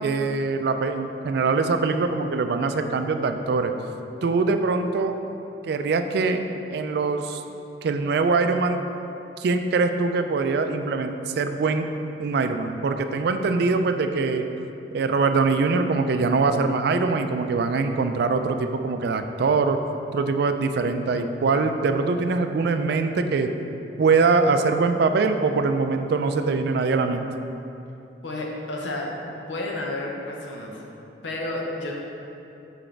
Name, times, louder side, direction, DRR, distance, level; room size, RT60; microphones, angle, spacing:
voice 1, 0.0-3.7 4.2-5.1 5.6-6.4 6.7-7.4 7.8-8.8 9.4-11.9 12.2-14.5 14.9-19.8 20.1-23.5 24.0-27.3, right 4 dB, 60° right, 7 dB, 0.3 m, -23 dB
voice 2, 28.2-29.1 29.5-30.8 31.2-31.9, left 2 dB, 85° left, -1 dB, 0.8 m, -31 dB
6.1 x 4.9 x 3.3 m, 2.9 s
head